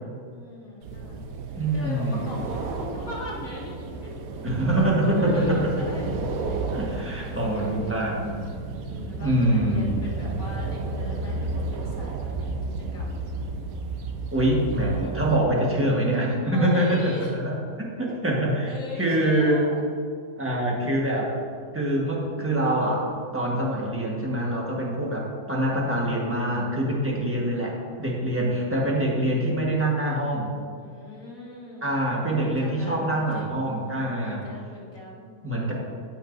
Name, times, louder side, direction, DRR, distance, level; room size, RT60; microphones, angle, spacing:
voice 1, 0.3-1.3 1.7-3.8 4.0-4.1 5.1-8.1 8.8-13.2 16.5-17.3 18.7-19.9 27.1-27.7 30.8-32.0 32.3-33.7 34.2-35.7, left 2 dB, 55° left, -6 dB, 2.3 m, -40 dB
sound 1, 0.8-15.4, right 3 dB, 65° right, 1.1 m, -33 dB
voice 2, 1.6-2.2 4.4-5.6 6.7-8.3 9.2-10.1 14.3-17.5 17.8-19.6 20.4-21.3 21.7-30.5 31.8-34.4 35.4-35.7, right 1 dB, 10° right, -3 dB, 1.2 m, -25 dB
14.0 x 5.8 x 2.6 m, 2.2 s
omnidirectional pair, 1.7 m